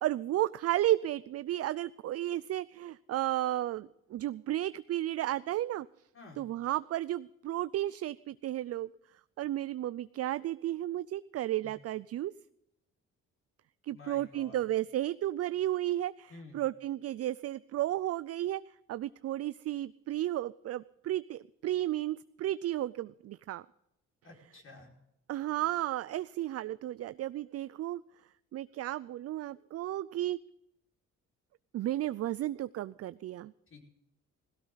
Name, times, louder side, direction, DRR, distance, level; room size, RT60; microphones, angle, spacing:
voice 1, 0.0-5.9 6.4-8.9 9.4-12.3 13.8-18.6 18.9-23.7 25.3-28.0 28.5-30.4 31.7-33.5, right 14 dB, 55° right, 16 dB, 0.4 m, -33 dB
voice 2, 13.9-14.6 16.3-16.6 24.2-24.9 33.7-33.8, left 3 dB, 45° left, -1 dB, 5.3 m, -51 dB
17.0 x 16.5 x 4.0 m, 0.84 s
cardioid pair, 90°, 30 cm